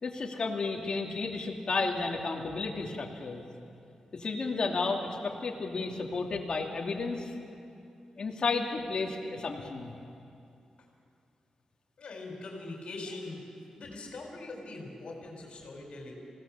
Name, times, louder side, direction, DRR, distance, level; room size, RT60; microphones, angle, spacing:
voice 1, 0.0-3.5 4.1-7.3 8.2-9.9, left 3 dB, 45° left, 0 dB, 2.6 m, -32 dB
voice 2, 12.0-13.4 13.7-16.1, left 2 dB, 60° left, -1 dB, 4.1 m, -42 dB
28.0 x 17.5 x 7.3 m, 2.6 s
wide cardioid pair, 165°, 2 cm